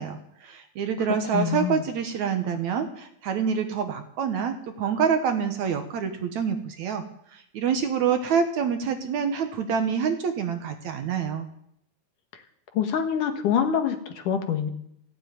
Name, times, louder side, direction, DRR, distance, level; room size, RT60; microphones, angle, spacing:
voice 1, 0.0-7.0 7.3-11.5, right 7 dB, 65° right, 7 dB, 2.2 m, -27 dB
voice 2, 1.3-1.8 12.7-14.7, left 8 dB, 70° left, 6 dB, 2.9 m, -25 dB
15.5 x 9.8 x 9.3 m, 0.73 s
omnidirectional pair, 4.0 m